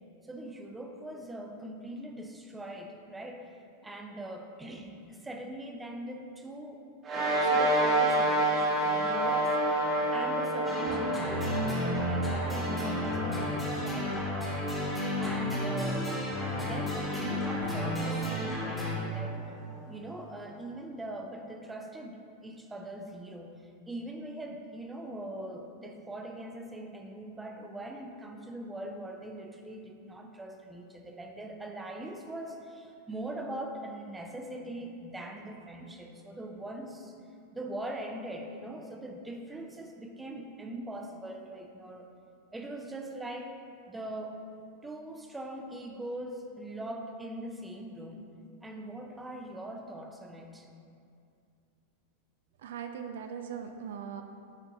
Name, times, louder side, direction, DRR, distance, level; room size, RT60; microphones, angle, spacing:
voice 1, 0.2-3.5 3.8-6.8 7.1-9.8 10.1-16.1 16.5-19.6 19.9-37.2 37.5-42.1 42.5-43.6 43.9-44.4 44.8-48.3 48.6-50.7, right 1 dB, 10° right, 3 dB, 0.6 m, -42 dB
sound 1, 7.0-19.8, right 1 dB, 25° right, 1.2 m, -31 dB
sound 2, 10.7-19.0, left 1 dB, 5° left, 1.2 m, -32 dB
voice 2, 52.6-54.2, right 7 dB, 60° right, 6 dB, 0.3 m, -39 dB
7.5 x 4.6 x 3.7 m, 2.4 s
figure-of-eight pair, 90°, 0 cm